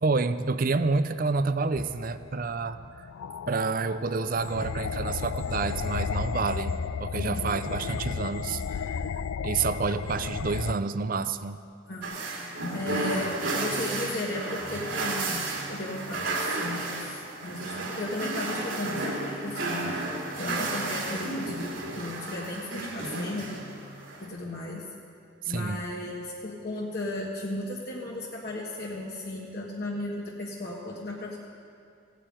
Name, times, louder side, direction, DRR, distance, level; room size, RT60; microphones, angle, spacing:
voice 1, 0.0-3.1 3.5-9.0 9.4-11.6 25.4-25.8, right 4 dB, 45° right, 12 dB, 0.5 m, -29 dB
sound 1, 1.7-10.8, left 6 dB, 80° left, 0.4 m, -34 dB
voice 2, 7.2-7.5 11.9-20.1 20.4-23.6 24.2-24.9 25.5-31.4, left 1 dB, 50° left, -3 dB, 1.5 m, -35 dB
sound 2, 12.0-24.3, right 2 dB, 70° right, 3.0 m, -32 dB
16.0 x 9.1 x 8.9 m, 2.4 s
head